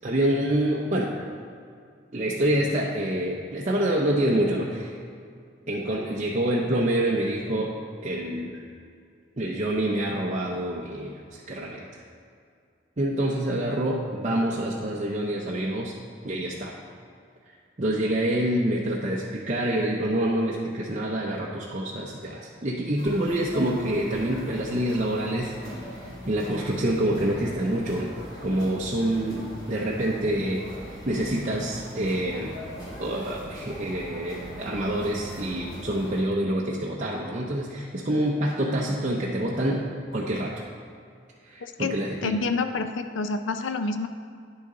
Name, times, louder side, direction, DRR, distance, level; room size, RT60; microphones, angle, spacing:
voice 1, 0.0-1.2 2.1-5.0 5.7-7.7 8.0-8.6 9.4-12.0 13.0-15.9 16.2-16.8 17.8-25.6 25.9-28.1 28.4-32.6 33.0-40.6 41.4-42.3, right 1 dB, 40° right, -4 dB, 0.6 m, -27 dB
sound 1, 23.0-36.2, equal, 20° left, 2.3 m, -41 dB
voice 2, 41.6-41.9 42.2-44.1, left 3 dB, 80° left, 8 dB, 0.4 m, -28 dB
9.8 x 7.0 x 3.8 m, 2.3 s
head